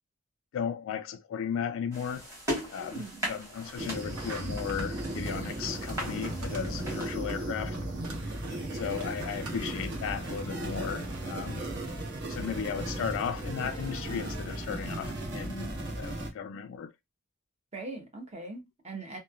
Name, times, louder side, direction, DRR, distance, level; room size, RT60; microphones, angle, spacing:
voice 1, 0.5-2.3 2.7-7.8 8.7-11.7 12.3-16.9, left 7 dB, 65° left, 0.3 m, -35 dB
sound 1, 1.9-7.1, equal, 15° right, 1.3 m, -39 dB
voice 2, 2.8-3.3 17.7-19.2, right 2 dB, 30° right, 0.7 m, -41 dB
sound 2, 3.5-12.0, right 3 dB, 80° right, 0.9 m, -49 dB
sound 3, 3.8-16.3, right 1 dB, 55° right, 0.9 m, -36 dB
3.0 x 2.1 x 2.2 m
head